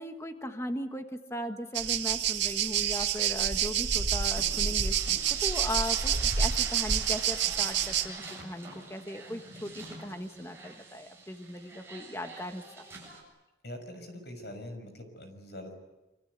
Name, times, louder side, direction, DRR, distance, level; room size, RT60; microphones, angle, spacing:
voice 1, 0.0-12.6, left 1 dB, 15° left, 6 dB, 1.5 m, -38 dB
sound 1, 1.7-8.1, right 8 dB, 85° right, 2.1 m, -28 dB
sound 2, 3.9-13.2, right 3 dB, 15° right, 7.6 m, -45 dB
voice 2, 13.6-15.7, left 1 dB, 65° left, 6 dB, 6.4 m, -43 dB
26.5 x 25.0 x 8.3 m, 1.0 s
head